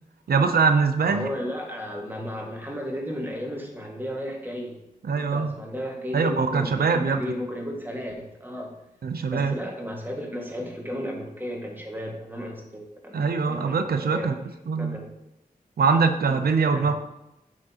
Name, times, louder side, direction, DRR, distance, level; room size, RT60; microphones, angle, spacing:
voice 1, 0.3-1.3 5.0-5.5 6.1-7.2 9.0-9.5 13.1-14.4 14.7-15.0 15.8-16.9, right 5 dB, 85° right, 7 dB, 0.6 m, -22 dB
voice 2, 1.1-4.8 5.1-8.7 9.3-13.2 13.5-14.3 14.8-15.1 16.3-16.4 16.6-16.9, equal, 15° right, 0 dB, 1.9 m, -34 dB
9.0 x 6.2 x 2.9 m, 0.90 s
cardioid pair, 55°, 15 cm